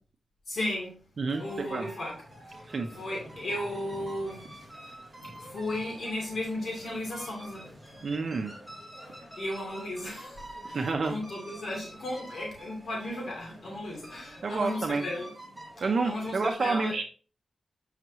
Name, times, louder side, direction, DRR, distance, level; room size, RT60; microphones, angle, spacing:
voice 1, 0.5-1.0 1.4-2.1 2.5-4.4 5.3-7.7 9.4-15.3 16.0-16.9, left 1 dB, 65° left, -2 dB, 2.8 m, -35 dB
sound 1, 1.3-16.5, right 1 dB, ahead, 3.3 m, -47 dB
voice 2, 8.0-8.5 10.7-11.2 14.4-15.0 15.8-17.0, right 4 dB, 55° right, 4 dB, 0.7 m, -29 dB
7.8 x 5.8 x 3.0 m, 0.38 s
wide cardioid pair, 130°, 0 cm